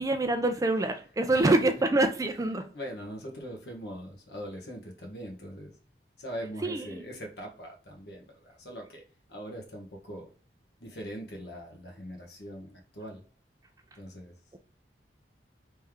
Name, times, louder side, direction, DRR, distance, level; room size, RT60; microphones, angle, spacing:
voice 1, 0.0-2.6 6.6-7.0, right 2 dB, 20° right, 0.4 m, -26 dB
voice 2, 2.7-5.7 6.2-9.0 9.3-10.3 10.8-13.2 13.9-14.4, equal, 65° left, 1.2 m, -41 dB
3.3 x 3.1 x 3.5 m
head